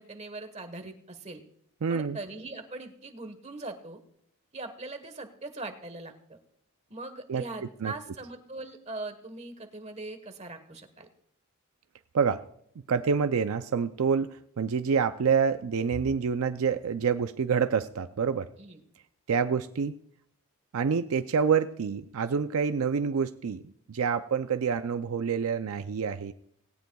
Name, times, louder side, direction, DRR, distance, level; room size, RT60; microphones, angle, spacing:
voice 1, 0.0-1.4 1.9-4.0 4.5-6.4 6.9-11.1 18.6-18.8 19.3-19.4, right 2 dB, 30° right, 7 dB, 1.2 m, -41 dB
voice 2, 1.8-2.2 7.3-7.4 7.8-7.9 12.1-12.4 12.9-18.5 19.3-20.0 20.7-26.3, right 6 dB, 75° right, 10 dB, 0.5 m, -27 dB
18.0 x 17.0 x 2.3 m, 0.70 s
head